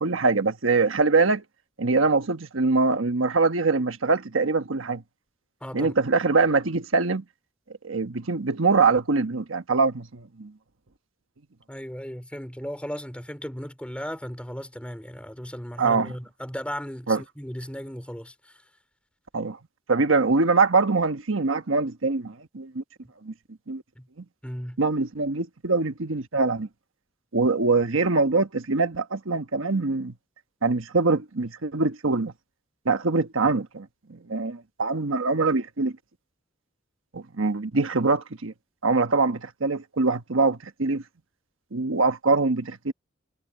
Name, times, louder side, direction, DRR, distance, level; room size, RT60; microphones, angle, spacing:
voice 1, 0.0-1.4 1.8-5.0 5.7-7.2 7.8-10.5 15.8-16.1 17.1-17.2 19.3-19.6 19.9-22.8 23.2-23.3 23.7-23.8 24.8-26.7 27.3-30.1 30.6-32.3 32.8-35.9 37.1-38.5 38.8-41.0 41.7-42.9, right 3 dB, 80° right, 1.3 m, -23 dB
voice 2, 5.6-5.9 11.7-18.3 24.0-24.1 24.4-24.8, equal, 5° left, 4.4 m, -36 dB
head